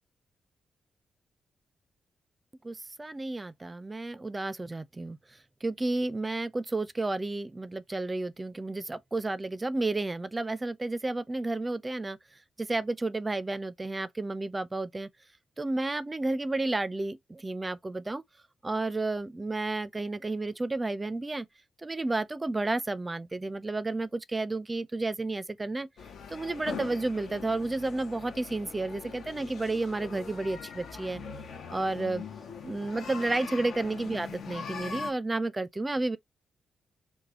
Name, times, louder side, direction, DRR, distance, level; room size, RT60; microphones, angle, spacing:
voice 1, 2.6-5.2 5.6-12.2 12.6-15.1 15.6-18.2 18.6-21.5 21.8-25.9 26.3-31.2 31.7-32.2 32.6-36.2, right 2 dB, 30° right, 0.4 m, -31 dB
sound 1, 26.0-35.1, left 5 dB, 70° left, 0.7 m, -42 dB
3.3 x 2.1 x 3.5 m
supercardioid pair, 45°, 0 cm